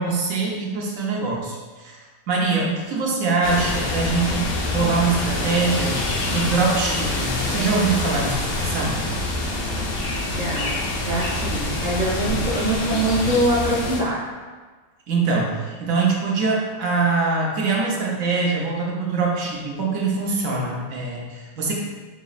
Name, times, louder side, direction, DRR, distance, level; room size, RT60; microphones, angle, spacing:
voice 1, 0.0-2.0 2.3-6.0 6.3-9.0 12.2-12.4 15.1-21.7, right 4 dB, 70° right, -2 dB, 1.1 m, -23 dB
sound 1, 3.4-14.0, left 2 dB, 70° left, 1.0 m, -26 dB
voice 2, 10.3-14.2, right 1 dB, 90° right, -6 dB, 0.3 m, -24 dB
4.9 x 2.9 x 2.4 m, 1.4 s
omnidirectional pair, 1.5 m